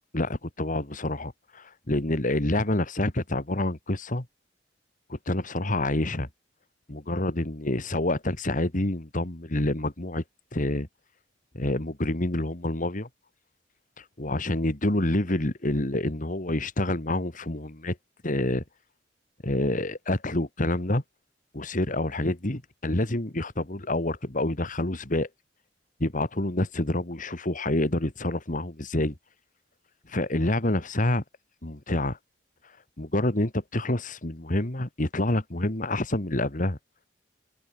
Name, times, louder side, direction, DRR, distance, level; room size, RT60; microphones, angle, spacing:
voice 1, 0.1-4.3 5.1-6.3 6.9-10.2 10.5-10.9 11.5-13.1 14.2-18.0 18.2-18.6 19.4-21.0 21.5-25.3 26.0-29.1 30.1-31.2 31.6-32.2 33.0-36.8, left 1 dB, 45° left, 2.3 m, -27 dB
open air
head